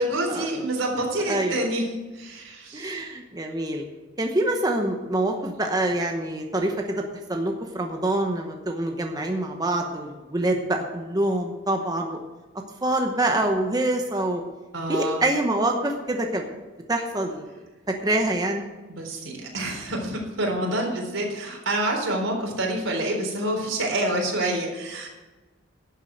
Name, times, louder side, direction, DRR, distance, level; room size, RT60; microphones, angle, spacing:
voice 1, 0.0-1.8 2.1-3.0 14.7-15.2 18.9-25.1, right 1 dB, 85° right, 0 dB, 3.9 m, -27 dB
voice 2, 1.3-1.6 2.7-3.8 4.2-7.0 7.3-12.2 12.8-14.4 14.9-17.5 17.9-18.7 20.6-20.7, right 1 dB, 20° right, 2 dB, 1.0 m, -25 dB
11.5 x 7.4 x 7.8 m, 1.2 s
head